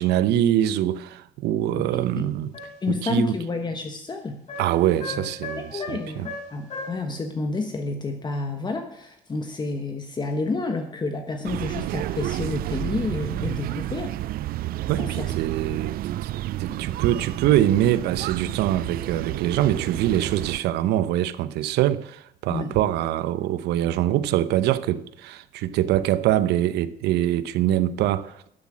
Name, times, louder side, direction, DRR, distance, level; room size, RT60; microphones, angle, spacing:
voice 1, 0.0-2.5 2.9-3.3 4.6-6.3 14.9-16.3 16.6-28.3, right 12 dB, 85° right, 0.7 m, -24 dB
voice 2, 1.8-2.3 2.8-4.4 5.1-5.3 5.6-14.1 15.0-15.3 15.7-15.8 22.5-22.8, left 3 dB, 25° left, 1.2 m, -30 dB
sound 1, 2.5-2.9 4.5-7.0, left 2 dB, 45° left, 5.9 m, -36 dB
sound 2, 11.4-20.6, right 14 dB, 60° right, 0.4 m, -30 dB
12.0 x 7.3 x 7.4 m
cardioid pair, 110°, 17 cm